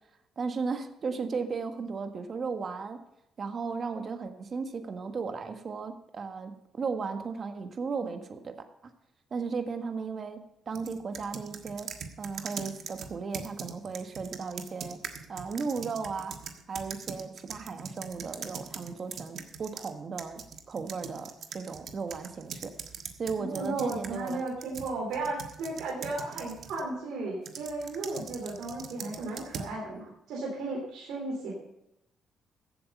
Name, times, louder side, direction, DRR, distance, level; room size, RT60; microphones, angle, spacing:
voice 1, 0.4-3.0 3.4-8.5 9.3-10.4 10.7-11.9 12.2-15.0 15.3-16.3 16.7-20.4 20.7-22.7 23.2-24.4, right 5 dB, 45° right, 7 dB, 1.5 m, -35 dB
sound 1, 10.7-19.9 20.2-26.9 27.5-29.7, right 6 dB, 65° right, 1.4 m, -42 dB
voice 2, 23.4-31.5, right 2 dB, 85° right, -2 dB, 3.3 m, -35 dB
14.5 x 8.3 x 5.4 m, 0.85 s
cardioid pair, 90°, 0 cm